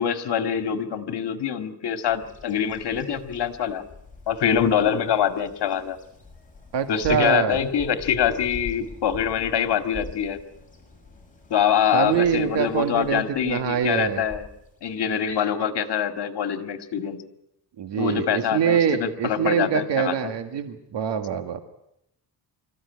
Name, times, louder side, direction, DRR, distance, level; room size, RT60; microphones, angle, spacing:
voice 1, 0.0-3.8 4.3-6.0 6.9-10.4 11.5-14.5 14.8-17.2 18.0-20.3, left 8 dB, 65° left, 8 dB, 2.2 m, -24 dB
Bird vocalization bird call bird song, 2.1-15.4, left 3 dB, 20° left, 6.8 m, -45 dB
voice 2, 6.7-7.6 11.9-14.3 17.8-21.6, right 8 dB, 75° right, 8 dB, 1.8 m, -24 dB
26.0 x 14.5 x 9.6 m, 0.80 s
cardioid pair, 120°, 43 cm